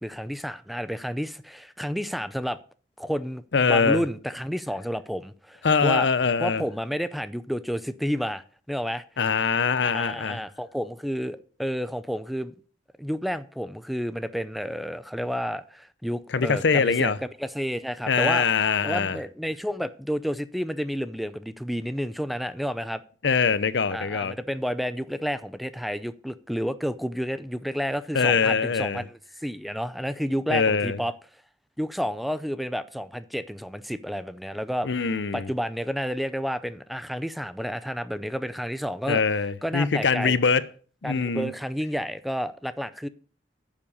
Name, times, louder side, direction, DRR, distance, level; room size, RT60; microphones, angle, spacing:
voice 1, 0.0-2.6 3.0-6.1 6.4-9.0 9.8-12.5 13.0-18.5 18.8-23.0 23.9-31.1 31.8-34.9 35.3-39.2 39.6-40.4 41.0-43.1, equal, ahead, 0.5 m, -30 dB
voice 2, 3.5-4.0 5.6-6.6 9.2-10.4 16.3-17.2 18.1-19.2 23.2-24.3 28.1-29.0 30.5-31.0 34.8-35.5 39.1-40.7 41.0-41.5, left 5 dB, 65° left, 0.6 m, -23 dB
9.8 x 7.4 x 5.3 m
head